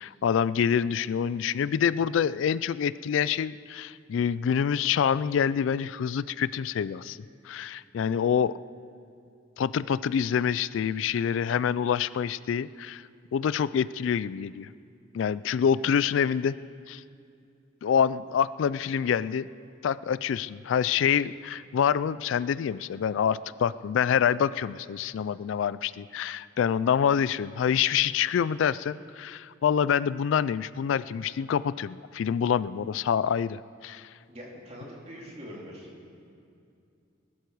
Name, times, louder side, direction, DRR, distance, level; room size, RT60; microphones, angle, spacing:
voice 1, 0.0-7.2 7.4-8.5 9.6-13.1 13.3-14.7 15.1-16.6 16.9-17.0 17.8-19.5 19.8-34.1, left 8 dB, 80° left, 18 dB, 0.3 m, -26 dB
voice 2, 34.3-36.0, equal, 30° right, -3 dB, 2.8 m, -43 dB
20.5 x 12.0 x 4.7 m, 2.5 s
head